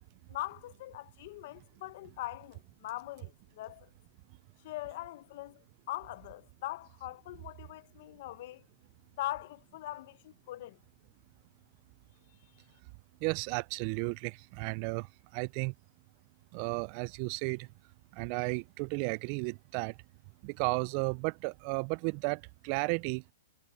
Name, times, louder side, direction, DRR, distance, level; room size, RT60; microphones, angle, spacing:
voice 1, 0.3-3.9 4.6-8.6 9.2-10.8, left 16 dB, 45° left, 0.9 m, -41 dB
voice 2, 13.2-15.7 16.5-17.7 18.1-20.0 20.4-23.2, right 31 dB, 35° right, 0.3 m, -34 dB
hypercardioid pair, 155°, 0 cm